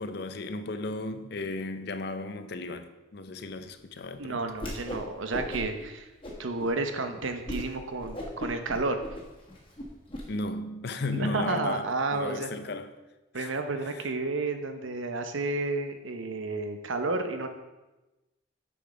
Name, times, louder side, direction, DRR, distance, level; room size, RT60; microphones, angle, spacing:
voice 1, 0.0-4.4 10.3-12.9 13.3-13.5, left 2 dB, 55° left, 0.5 m, -35 dB
voice 2, 4.2-6.1 6.4-9.0 11.1-12.5 13.3-17.5, right 3 dB, 80° right, 0.9 m, -31 dB
Whoosh swoosh swish, 4.5-5.0 5.3-5.8 6.2-6.7 7.1-7.2 7.5-7.7 8.0-10.2, left 1 dB, 25° left, 1.5 m, -37 dB
6.7 x 6.3 x 5.0 m
head